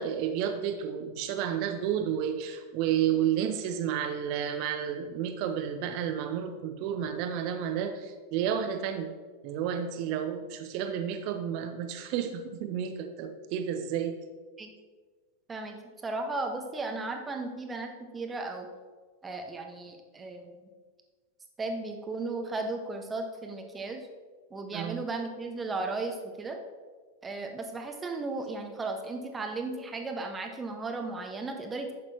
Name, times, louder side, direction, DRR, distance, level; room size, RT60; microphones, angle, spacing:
voice 1, 0.0-9.1 9.4-14.2 24.7-25.0, right 9 dB, 45° right, 7 dB, 0.9 m, -31 dB
voice 2, 15.5-18.7 19.2-20.6 21.6-24.1 24.5-26.6 27.2-31.9, right 3 dB, 15° right, 4 dB, 1.1 m, -35 dB
11.5 x 8.1 x 2.9 m, 1.4 s
figure-of-eight pair, 90°, 0 cm